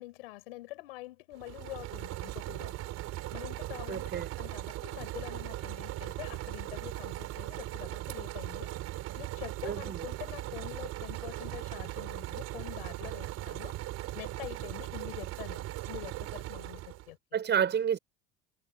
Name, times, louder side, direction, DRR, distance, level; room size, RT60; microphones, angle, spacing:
voice 1, 0.0-2.9 3.3-8.7 9.2-13.7 14.1-17.4, left 20 dB, 80° left, 6.8 m, -45 dB
sound 1, 1.3-17.1, right 16 dB, 60° right, 4.6 m, -39 dB
voice 2, 3.9-4.3 9.6-10.1 17.3-18.0, right 8 dB, 40° right, 5.8 m, -29 dB
supercardioid pair, 90°, 29 cm